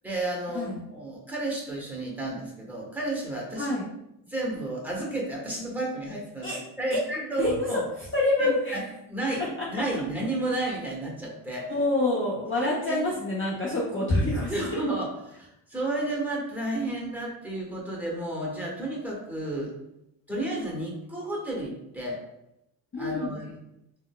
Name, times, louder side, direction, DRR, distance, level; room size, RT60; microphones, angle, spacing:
voice 1, 0.0-3.8 4.3-7.8 8.4-9.4 9.7-11.7 12.6-13.0 14.5-19.7 20.3-22.2 23.0-23.5, right 2 dB, 5° right, -3 dB, 1.1 m, -32 dB
voice 2, 8.1-8.8 11.7-14.8 22.9-23.4, left 2 dB, 25° left, -5 dB, 0.7 m, -26 dB
3.6 x 2.2 x 2.2 m, 0.83 s
supercardioid pair, 65°, 48 cm